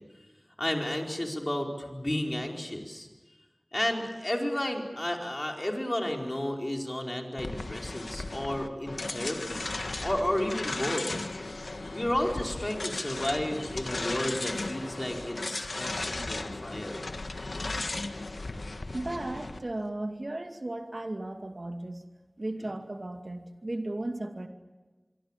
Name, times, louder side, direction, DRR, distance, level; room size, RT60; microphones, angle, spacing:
voice 1, 0.6-3.1 3.7-9.7 10.0-11.1 11.9-17.0, left 1 dB, 30° left, 1 dB, 4.8 m, -32 dB
sound 1, 7.4-19.6, left 2 dB, 80° left, 1.5 m, -36 dB
voice 2, 18.9-22.0 22.4-24.5, right 1 dB, 50° right, 5 dB, 2.4 m, -35 dB
25.5 x 24.0 x 7.5 m, 1.3 s
wide cardioid pair, 40°, 0 cm